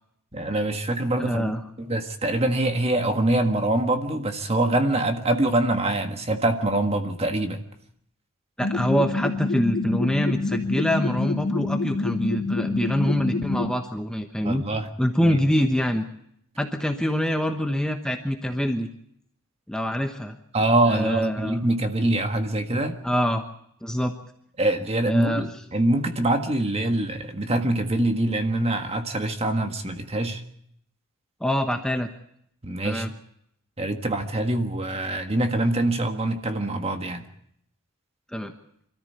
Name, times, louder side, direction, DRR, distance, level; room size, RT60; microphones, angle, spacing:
voice 1, 0.3-1.5 1.8-7.6 14.4-14.9 15.2-15.4 20.5-23.0 24.6-30.4 32.6-33.0 33.8-37.3, right 1 dB, 30° right, 6 dB, 1.7 m, -24 dB
voice 2, 1.2-1.6 8.6-14.6 15.0-16.0 16.6-18.9 19.7-20.4 20.9-21.6 23.0-23.4 23.8-24.1 25.1-25.5 31.4-32.1 32.8-33.1 38.3-38.5, equal, 5° left, 5 dB, 1.1 m, -25 dB
sound 1, 8.6-13.7, left 3 dB, 70° left, 1.4 m, -27 dB
25.5 x 14.0 x 8.2 m, 0.72 s
head